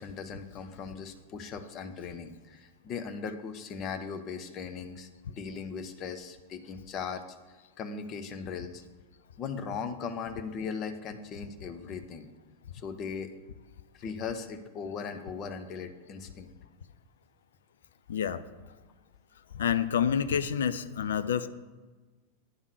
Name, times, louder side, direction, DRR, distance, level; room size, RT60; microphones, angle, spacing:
voice 1, 0.0-7.2 7.8-8.8 9.4-12.3 12.7-13.3 13.9-16.5, left 5 dB, 35° left, 7 dB, 0.7 m, -38 dB
voice 2, 18.1-18.5 19.5-21.5, left 8 dB, 65° left, 13 dB, 0.4 m, -28 dB
9.5 x 3.7 x 6.2 m, 1.3 s
figure-of-eight pair, 90°, 0 cm